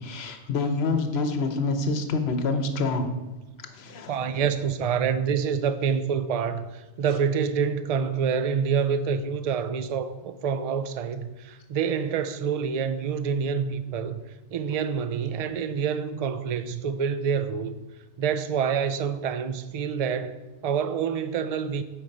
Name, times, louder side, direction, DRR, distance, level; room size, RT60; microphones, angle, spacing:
voice 1, 0.0-3.1 3.7-4.1, left 3 dB, 65° left, 1.1 m, -26 dB
voice 2, 4.1-14.2 14.5-17.8 18.2-21.8, right 6 dB, 65° right, 0.3 m, -27 dB
8.6 x 5.1 x 5.3 m
omnidirectional pair, 1.2 m